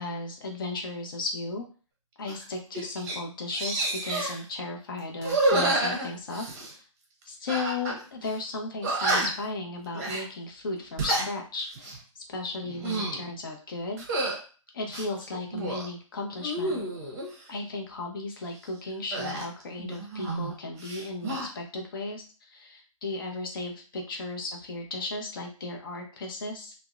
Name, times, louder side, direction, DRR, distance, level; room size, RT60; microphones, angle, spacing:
voice 1, 0.0-1.6 2.2-6.4 6.7-6.8 7.3-14.1 14.7-16.8 17.5-26.7, left 3 dB, 40° left, 2 dB, 0.6 m, -35 dB
sound 1, 2.3-2.4 2.7-3.2 3.5-4.4 5.2-6.7 7.5-8.0 8.3-8.4 8.8-9.5 9.9-10.2 10.8-11.3 11.7-12.0 12.6-13.2 14.0-14.4 14.9-15.9 16.4-17.3 19.1-20.5 20.8-21.5, right 2 dB, 30° right, 0.7 m, -29 dB
2.6 x 2.0 x 2.4 m, 0.37 s
figure-of-eight pair, 145°, 17 cm